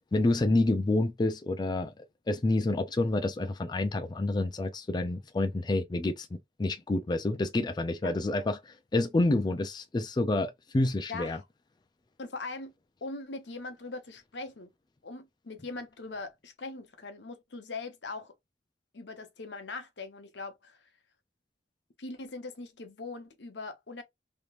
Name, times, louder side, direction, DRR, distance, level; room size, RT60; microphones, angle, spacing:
voice 1, 0.1-6.3 6.6-11.4, left 2 dB, 25° left, 0.4 m, -28 dB
voice 2, 11.1-11.4 12.2-12.7 13.0-14.7 15.0-18.3 18.9-20.8 22.0-24.0, left 3 dB, 75° left, 0.9 m, -41 dB
3.3 x 2.9 x 2.4 m
head